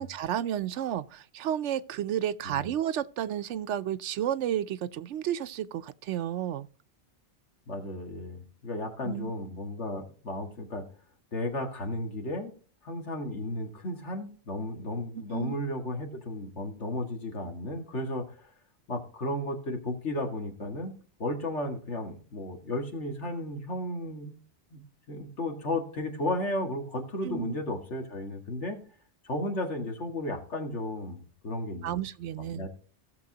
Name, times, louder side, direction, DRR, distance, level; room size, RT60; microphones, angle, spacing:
voice 1, 0.0-6.7 9.0-9.3 15.3-15.6 27.2-27.6 31.8-32.7, right 10 dB, 85° right, 0.9 m, -32 dB
voice 2, 7.7-10.9 11.3-12.5 12.8-18.3 18.9-24.4 24.7-24.8 25.1-28.8 29.2-32.0 32.4-32.7, left 1 dB, 80° left, 2.3 m, -34 dB
16.5 x 7.0 x 2.8 m
omnidirectional pair, 1.2 m